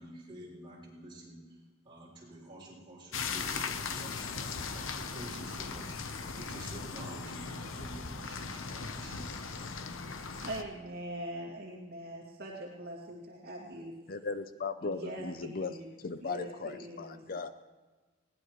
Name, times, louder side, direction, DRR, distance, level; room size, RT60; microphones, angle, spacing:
voice 1, 0.0-1.4 1.8-6.0 6.3-9.7, right 1 dB, 25° right, -6 dB, 6.6 m, -49 dB
sound 1, 3.1-10.6, left 5 dB, 75° left, 1.0 m, -38 dB
voice 2, 10.4-13.9 14.8-17.2, right 1 dB, 55° right, -3 dB, 2.4 m, -42 dB
voice 3, 14.1-15.8 16.0-17.5, left 4 dB, 45° left, 11 dB, 0.6 m, -37 dB
20.5 x 18.5 x 3.2 m, 1.3 s
head